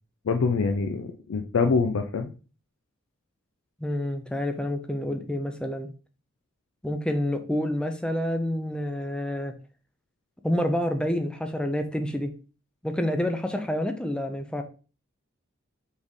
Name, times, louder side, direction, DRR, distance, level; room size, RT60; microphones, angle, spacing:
voice 1, 0.2-2.3, left 4 dB, 85° left, 6 dB, 0.4 m, -25 dB
voice 2, 3.8-5.9 6.8-9.5 10.4-12.3 12.8-14.6, left 1 dB, 5° left, 6 dB, 0.4 m, -28 dB
4.3 x 3.5 x 3.1 m, 0.36 s
head